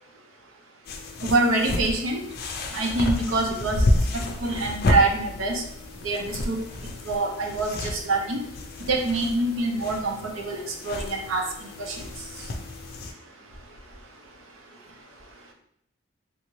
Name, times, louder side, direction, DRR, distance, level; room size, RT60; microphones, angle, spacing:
sound 1, 0.9-13.1, left 1 dB, 50° left, 0.4 m, -30 dB
voice 1, 1.2-2.2 2.7-3.8 4.4-5.6 6.0-6.6 7.1-8.4 8.9-11.4 11.8-12.0, right 2 dB, 90° right, 2 dB, 0.6 m, -25 dB
3.4 x 2.5 x 3.1 m, 0.73 s
head